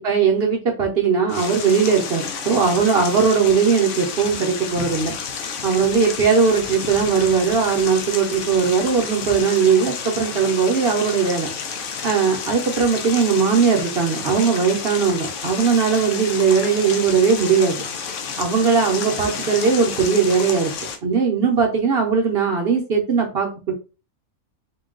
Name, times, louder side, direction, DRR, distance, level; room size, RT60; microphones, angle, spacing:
voice 1, 0.0-5.2 5.6-11.5 12.0-17.8 18.4-20.7 21.0-23.7, right 5 dB, 50° right, 1 dB, 0.8 m, -19 dB
sound 1, 1.3-21.0, left 6 dB, 65° left, 0.9 m, -30 dB
3.8 x 2.3 x 3.7 m, 0.32 s
omnidirectional pair, 1.5 m